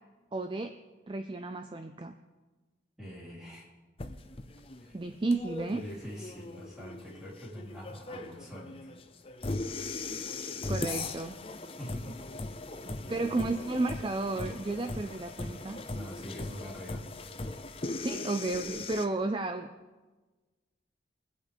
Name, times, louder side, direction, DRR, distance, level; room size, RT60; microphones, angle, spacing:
voice 1, 0.3-0.7 1.1-2.1 4.9-5.8 10.7-11.3 12.9-15.8 18.0-19.7, right 2 dB, 25° right, 7 dB, 0.4 m, -32 dB
voice 2, 3.0-3.7 4.8-4.9 5.7-8.9 11.6-12.4 13.0-13.2 15.9-17.0, equal, 5° right, -6 dB, 3.5 m, -44 dB
sound 1, 4.0-19.0, left 3 dB, 30° left, 0.6 m, -39 dB
22.5 x 8.2 x 3.5 m, 1.3 s
head